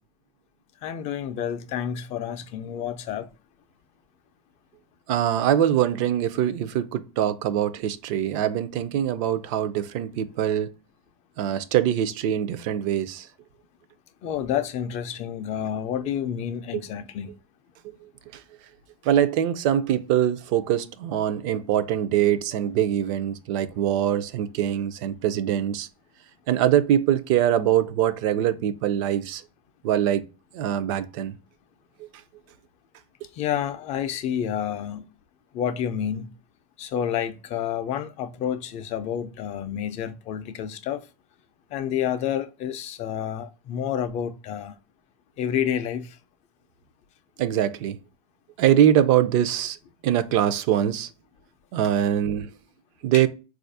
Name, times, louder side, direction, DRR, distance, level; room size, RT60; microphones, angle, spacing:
voice 1, 0.8-3.3 14.2-17.3 33.3-35.0 35.5-36.3 36.8-41.1 41.7-44.7 45.4-46.2 53.1-53.2, left 9 dB, 35° left, 0.4 m, -29 dB
voice 2, 5.1-10.7 11.4-13.3 16.7-16.8 17.8-17.9 19.0-25.9 26.5-29.4 29.8-30.2 30.5-31.4 47.4-48.0 48.6-49.8 50.0-51.1 51.7-52.5 53.0-53.3, right 10 dB, 55° right, 0.4 m, -23 dB
4.0 x 2.4 x 2.5 m
supercardioid pair, 120°, 19 cm